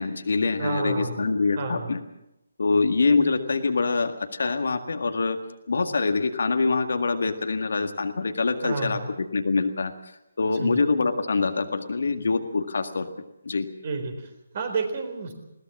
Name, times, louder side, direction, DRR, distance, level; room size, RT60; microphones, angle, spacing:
voice 1, 0.0-2.0 2.6-5.4 5.7-9.9 10.4-13.1 13.4-13.7, left 4 dB, 60° left, 7 dB, 1.9 m, -24 dB
voice 2, 0.6-1.2 1.6-1.9 8.6-9.1 10.6-10.8 13.8-14.1 14.5-15.3, right 4 dB, 40° right, 6 dB, 4.1 m, -30 dB
21.0 x 17.5 x 7.5 m, 0.88 s
figure-of-eight pair, 145°, 0 cm